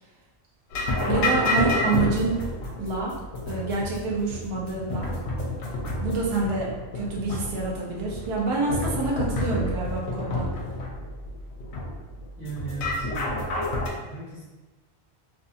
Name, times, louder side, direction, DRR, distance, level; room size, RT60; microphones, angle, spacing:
sound 1, 0.7-13.9, left 1 dB, 75° left, 0.9 m, -29 dB
voice 1, 1.1-2.4 2.8-3.2 3.5-5.2 6.0-10.5, right 3 dB, 40° right, -3 dB, 0.4 m, -27 dB
voice 2, 12.4-13.3 14.0-14.4, right 4 dB, 10° left, -10 dB, 1.2 m, -37 dB
2.7 x 2.5 x 2.4 m, 1.1 s
omnidirectional pair, 1.2 m